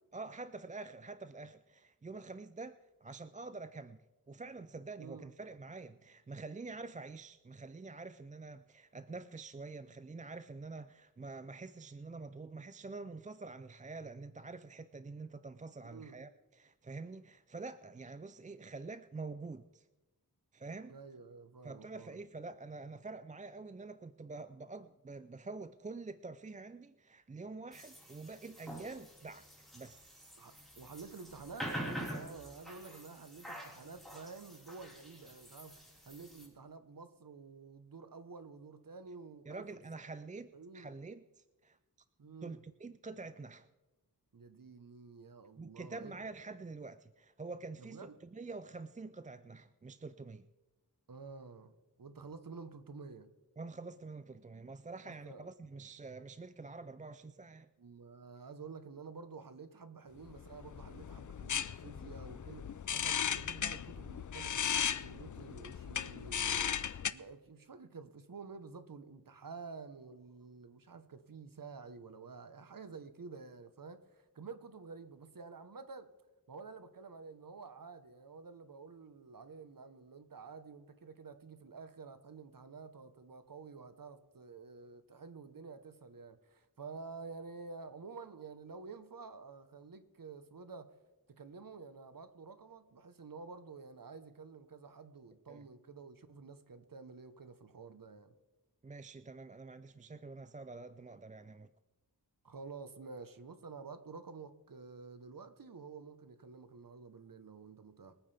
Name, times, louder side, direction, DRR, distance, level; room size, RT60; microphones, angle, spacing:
voice 1, 0.1-4.0 4.3-19.9 20.5-21.0 21.6-30.3 39.5-41.8 42.4-43.7 45.6-50.5 53.6-57.7 95.5-95.6 98.8-101.7, right 3 dB, 20° right, 0.4 m, -47 dB
voice 2, 5.0-5.3 15.8-16.2 20.9-22.2 30.4-39.7 40.5-40.9 42.2-42.6 44.3-46.1 47.8-48.1 51.1-53.3 55.0-55.5 57.8-66.8 67.1-76.1 76.5-91.0 91.3-98.3 102.4-108.1, right 4 dB, 55° right, 1.1 m, -50 dB
sound 1, 27.7-36.5, equal, ahead, 4.7 m, -46 dB
sound 2, 60.3-67.1, left 8 dB, 50° left, 0.5 m, -37 dB
24.0 x 9.1 x 3.4 m
wide cardioid pair, 60°, 39 cm